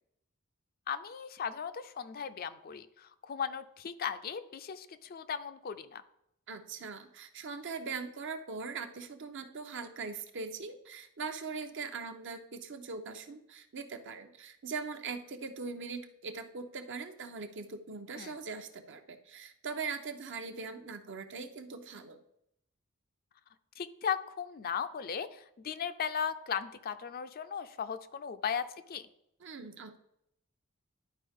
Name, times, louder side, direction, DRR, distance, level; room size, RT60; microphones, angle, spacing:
voice 1, 0.9-6.0 18.2-18.3 23.8-29.0, left 7 dB, 45° left, 11 dB, 0.4 m, -37 dB
voice 2, 6.5-22.2 29.4-30.0, right 4 dB, 60° right, 7 dB, 0.8 m, -41 dB
11.0 x 4.7 x 3.6 m, 0.79 s
head